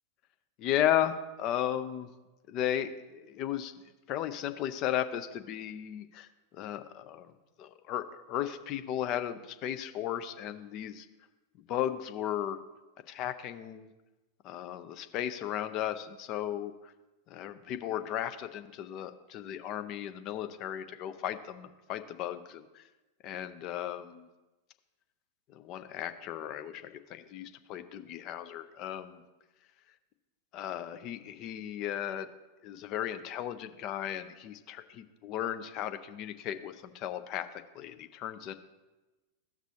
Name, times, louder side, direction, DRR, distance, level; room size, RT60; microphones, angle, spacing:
voice 1, 0.6-2.1 2.5-3.7 4.1-6.3 6.5-7.3 7.6-11.1 11.7-12.6 13.1-13.9 14.4-16.7 17.3-22.8 23.2-24.3 25.5-29.2 30.5-32.3 32.6-37.5 37.7-38.5, left 11 dB, 40° left, 10 dB, 0.5 m, -35 dB
14.5 x 6.1 x 2.8 m, 1.1 s
figure-of-eight pair, 90°, 0 cm